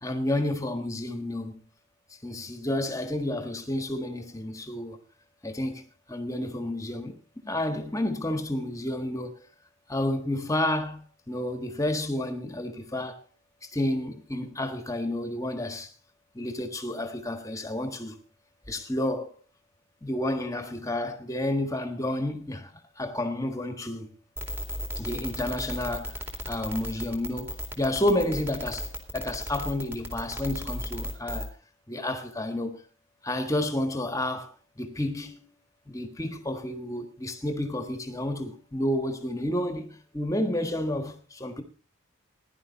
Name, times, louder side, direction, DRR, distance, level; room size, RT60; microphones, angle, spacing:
voice 1, 0.0-1.6 2.2-5.0 5.4-7.1 7.4-9.3 9.9-13.2 13.6-15.9 16.3-18.2 18.7-19.3 20.0-24.1 24.9-26.2 26.5-28.9 29.1-31.5 31.9-32.8 33.2-34.5 34.8-35.4 35.9-41.6, left 1 dB, 15° left, 1.5 m, -30 dB
sound 1, 24.4-31.5, left 1 dB, 10° right, 2.4 m, -34 dB
16.0 x 11.0 x 4.1 m
head